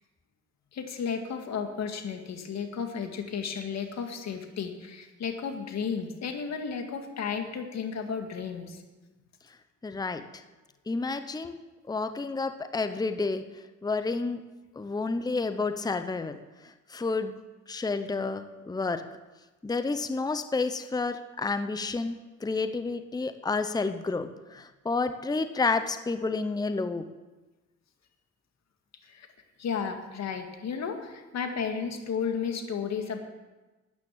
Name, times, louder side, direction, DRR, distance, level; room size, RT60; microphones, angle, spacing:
voice 1, 0.7-8.8 29.1-29.3 29.6-33.2, left 6 dB, 60° left, 5 dB, 2.0 m, -33 dB
voice 2, 9.8-10.2 10.9-11.6 11.9-13.4 13.8-14.4 14.8-16.4 16.6-17.3 17.7-19.0 19.6-22.2 22.4-27.0, left 3 dB, 15° left, 10 dB, 0.8 m, -30 dB
13.0 x 9.6 x 7.3 m, 1.2 s
cardioid pair, 90°, 30 cm